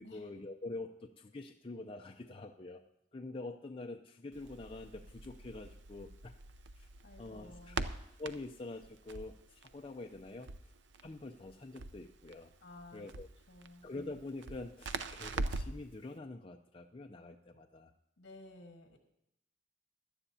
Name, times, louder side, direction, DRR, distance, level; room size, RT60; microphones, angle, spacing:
voice 1, 0.0-2.8 3.1-6.3 6.8-6.9 7.2-7.9 8.2-10.5 11.0-12.5 12.9-13.3 13.8-17.9, left 2 dB, 30° left, 3 dB, 0.5 m, -46 dB
Crackle, 4.3-15.9, right 3 dB, 75° right, 0.7 m, -43 dB
voice 2, 7.0-7.8 12.6-13.0 13.5-13.8 18.2-19.0, left 2 dB, 65° left, 3 dB, 1.6 m, -54 dB
17.0 x 12.0 x 2.8 m, 0.83 s
head